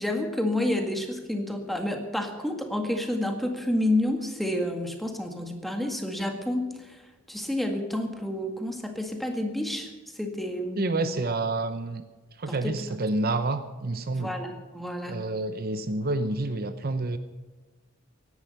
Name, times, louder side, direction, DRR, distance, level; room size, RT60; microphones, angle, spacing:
voice 1, 0.0-7.0 7.3-11.2 12.5-12.8 14.1-15.2, left 1 dB, ahead, 4 dB, 1.9 m, -29 dB
voice 2, 10.8-12.0 12.4-14.3 15.1-17.2, right 2 dB, 50° right, 10 dB, 0.8 m, -28 dB
17.0 x 11.0 x 6.6 m, 1.3 s
head